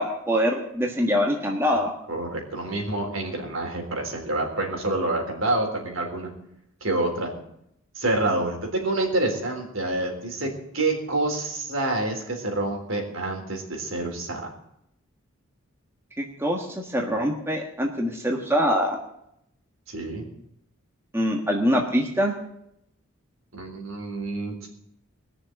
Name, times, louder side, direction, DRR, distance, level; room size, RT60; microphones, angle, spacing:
voice 1, 0.0-1.9 16.2-19.0 21.1-22.3, equal, 10° right, 1 dB, 1.5 m, -24 dB
voice 2, 2.1-6.3 6.8-7.3 7.9-14.4 19.9-20.2 23.5-24.7, right 2 dB, 70° right, 1 dB, 3.9 m, -27 dB
20.5 x 6.9 x 7.9 m, 0.77 s
head